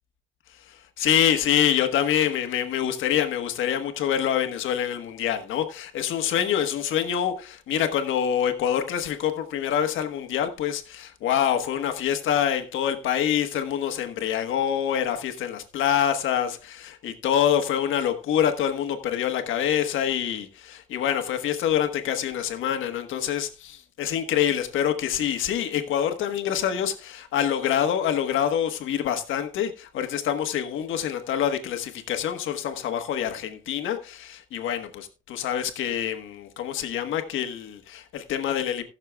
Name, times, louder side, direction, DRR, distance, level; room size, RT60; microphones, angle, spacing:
voice 1, 0.7-38.8, left 9 dB, 80° left, 1.4 m, -26 dB
19.0 x 6.6 x 2.3 m
cardioid pair, 90°, 20 cm